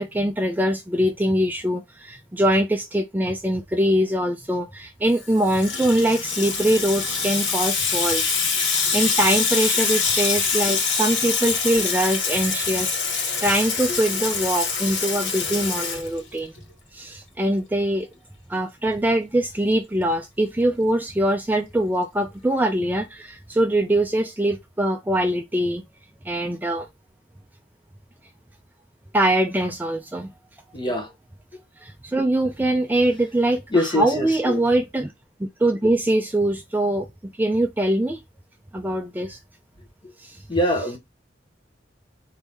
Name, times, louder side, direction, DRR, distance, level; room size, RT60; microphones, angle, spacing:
voice 1, 0.0-8.2 8.7-16.5 16.9-18.1 18.5-25.8 26.2-26.9 29.1-30.3 31.8-35.1 35.4-37.1 37.4-38.2 38.7-39.4 40.2-40.4, right 1 dB, 10° right, 0.4 m, -23 dB
Water tap faucet / Sink (filling or washing), 5.2-16.6, left 5 dB, 85° left, 1.3 m, -25 dB
voice 2, 30.7-31.1 33.7-34.6 40.5-41.0, left 1 dB, 25° left, 1.1 m, -23 dB
4.6 x 2.7 x 3.4 m
head